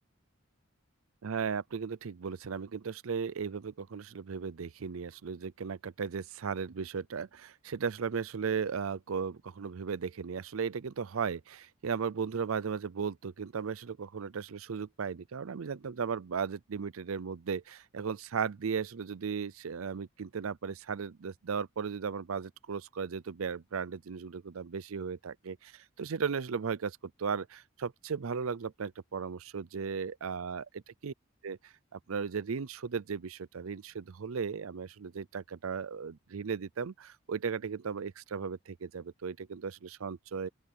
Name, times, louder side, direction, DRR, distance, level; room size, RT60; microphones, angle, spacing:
voice 1, 1.2-31.1 31.4-40.5, right 6 dB, 80° right, 0.5 m, -36 dB
open air
head